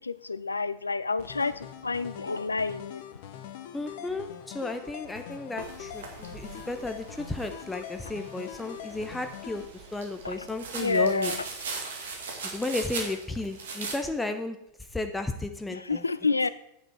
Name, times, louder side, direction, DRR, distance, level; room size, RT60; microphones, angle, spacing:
voice 1, 0.0-3.0 10.2-10.4 10.8-11.4 15.7-16.5, left 4 dB, 80° left, 16 dB, 0.5 m, -28 dB
sound 1, 1.2-9.7, left 10 dB, 50° left, 1.0 m, -43 dB
voice 2, 3.7-11.3 12.5-14.6 14.9-16.0, left 2 dB, 10° left, 7 dB, 0.8 m, -34 dB
sound 2, 5.6-14.0, right 4 dB, 60° right, 2.0 m, -40 dB
9.1 x 9.0 x 4.7 m, 0.78 s
figure-of-eight pair, 90°, 0 cm